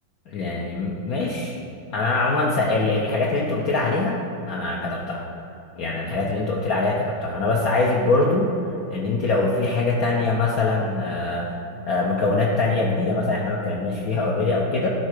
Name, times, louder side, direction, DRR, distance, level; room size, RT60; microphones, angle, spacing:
voice 1, 0.3-1.6 1.9-4.2 4.5-5.3 5.8-8.5 8.9-11.5 11.9-14.9, left 3 dB, 65° left, -2 dB, 0.9 m, -23 dB
11.0 x 3.7 x 4.9 m, 2.8 s
omnidirectional pair, 2.1 m